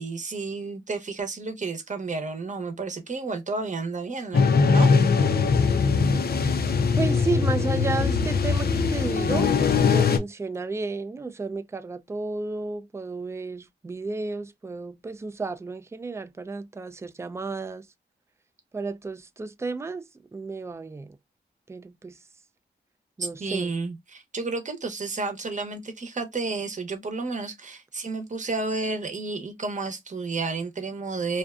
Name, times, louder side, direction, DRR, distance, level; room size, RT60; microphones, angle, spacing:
voice 1, 0.0-4.9 23.2-31.4, right 3 dB, 40° right, 0.8 m, -31 dB
sound 1, 4.3-10.2, left 5 dB, 55° left, 0.5 m, -21 dB
voice 2, 7.0-9.6 9.8-17.9 18.7-20.1 20.3-21.2 21.7-22.2 23.2-23.7, right 3 dB, 15° right, 0.3 m, -32 dB
2.5 x 2.2 x 2.3 m
cardioid pair, 60°, 19 cm